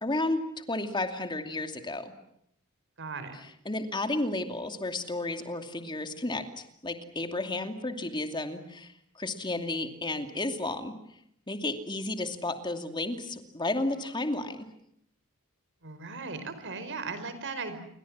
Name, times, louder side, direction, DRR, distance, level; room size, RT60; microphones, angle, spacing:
voice 1, 0.0-2.1 3.6-8.9 9.2-10.9 11.5-14.7, left 2 dB, 20° left, 7 dB, 2.6 m, -32 dB
voice 2, 3.0-3.4 15.8-17.8, right 4 dB, 55° right, 11 dB, 4.9 m, -37 dB
28.5 x 24.0 x 7.4 m, 0.73 s
head